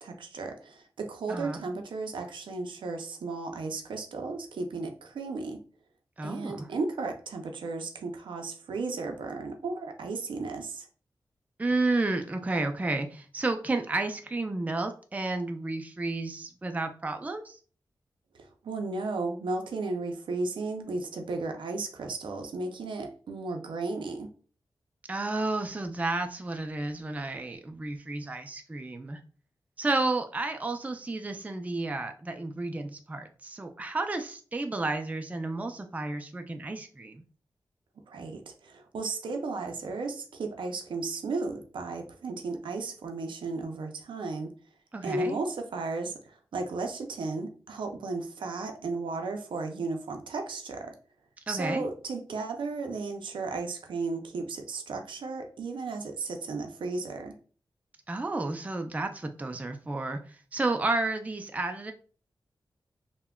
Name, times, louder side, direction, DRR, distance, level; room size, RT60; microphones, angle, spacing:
voice 1, 0.0-5.6 6.2-10.9 18.3-24.3 38.1-44.5 45.0-50.9 51.5-57.4, right 3 dB, 85° right, 5 dB, 0.5 m, -34 dB
voice 2, 1.3-1.6 6.2-6.7 11.6-17.6 25.1-29.2 29.8-37.2 44.9-45.4 51.5-51.8 58.1-61.9, right 2 dB, 20° right, 5 dB, 0.3 m, -31 dB
3.5 x 2.1 x 2.2 m, 0.41 s
cardioid pair, 55°, 8 cm